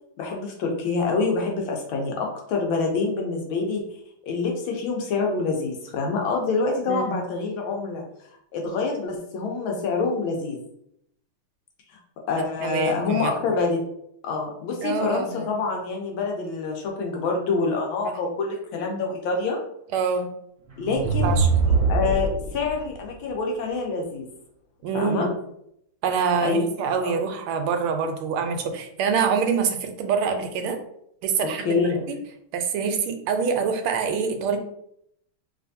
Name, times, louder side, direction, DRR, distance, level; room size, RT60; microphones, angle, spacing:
voice 1, 0.2-3.8 4.3-8.0 8.5-10.6 11.9-12.0 12.3-13.8 14.2-19.6 20.8-21.3 21.9-24.3 24.9-25.3 26.4-26.6 27.0-27.1 31.6-32.1, left 4 dB, 75° left, 1 dB, 1.4 m, -26 dB
voice 2, 6.9-7.2 12.6-13.3 14.8-15.5 19.9-20.3 21.2-21.6 24.8-25.3 26.0-30.8 31.2-31.8 32.1-32.2 32.5-34.6, right 6 dB, 90° right, 5 dB, 1.5 m, -25 dB
sound 1, 20.7-22.7, right 4 dB, 45° right, 1.1 m, -22 dB
3.3 x 3.0 x 2.6 m, 0.73 s
omnidirectional pair, 2.3 m